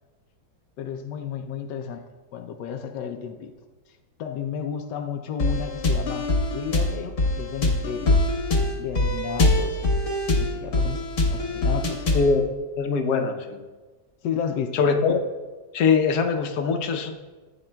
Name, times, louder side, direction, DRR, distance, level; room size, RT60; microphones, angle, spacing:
voice 1, 0.8-2.0 2.3-3.5 4.2-8.2 8.7-12.0 14.2-14.7, left 8 dB, 90° left, 6 dB, 1.3 m, -33 dB
sound 1, 5.4-12.4, left 2 dB, 50° left, 1.5 m, -23 dB
voice 2, 12.1-12.5 12.8-13.6 14.7-15.2 15.7-17.1, left 5 dB, 70° left, 5 dB, 1.3 m, -22 dB
14.5 x 9.0 x 2.2 m, 1.3 s
omnidirectional pair, 1.8 m